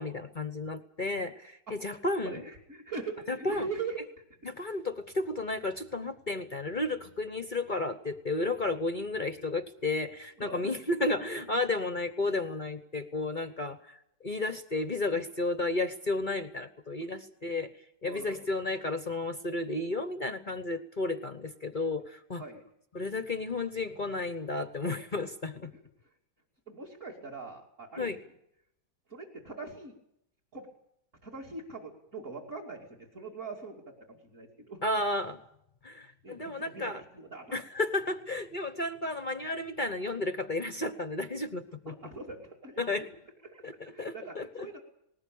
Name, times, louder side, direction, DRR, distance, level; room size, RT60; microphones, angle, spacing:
voice 1, 0.0-2.4 3.3-3.7 4.4-14.0 14.2-17.7 18.0-22.4 22.9-25.7 28.0-28.2 34.8-35.4 35.8-37.0 37.5-41.9 42.8-43.0 43.6-44.7, left 2 dB, 35° left, 9 dB, 0.8 m, -32 dB
voice 2, 2.2-4.0 4.4-4.8 10.4-10.8 18.0-18.5 22.4-22.6 25.7-26.1 26.7-28.1 29.1-29.9 30.5-30.7 31.2-34.8 36.2-37.5 41.9-42.8 43.4-44.8, right 4 dB, 40° right, -4 dB, 3.1 m, -42 dB
20.0 x 18.5 x 8.6 m, 0.76 s
omnidirectional pair, 2.1 m